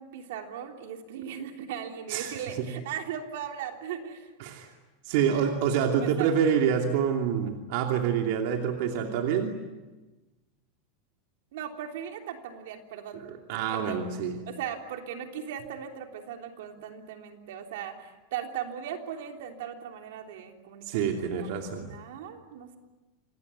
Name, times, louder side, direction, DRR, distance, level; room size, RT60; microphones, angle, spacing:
voice 1, 0.0-4.3 5.8-6.3 11.5-13.2 13.7-14.0 14.5-22.8, right 9 dB, 70° right, 4 dB, 3.3 m, -38 dB
voice 2, 5.1-9.6 13.1-14.4 20.9-21.9, right 7 dB, 55° right, 2 dB, 2.8 m, -27 dB
27.0 x 20.0 x 9.6 m, 1.2 s
supercardioid pair, 165°, 0 cm